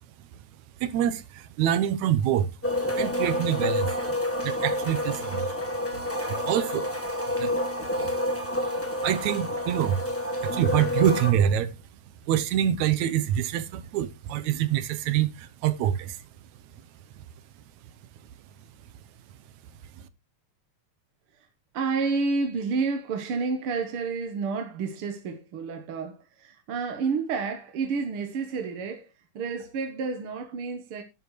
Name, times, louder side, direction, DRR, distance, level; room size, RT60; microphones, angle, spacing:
voice 1, 0.8-2.5 3.0-3.9 4.4-5.5 6.3-6.9 7.4-7.5 9.0-10.0 10.4-11.7 12.3-16.2, right 10 dB, 80° right, 2.1 m, -25 dB
sound 1, 2.6-11.3, left 1 dB, 5° left, 1.3 m, -29 dB
voice 2, 21.7-29.1 29.4-31.0, right 4 dB, 55° right, 1.9 m, -30 dB
11.0 x 10.5 x 3.1 m
omnidirectional pair, 3.3 m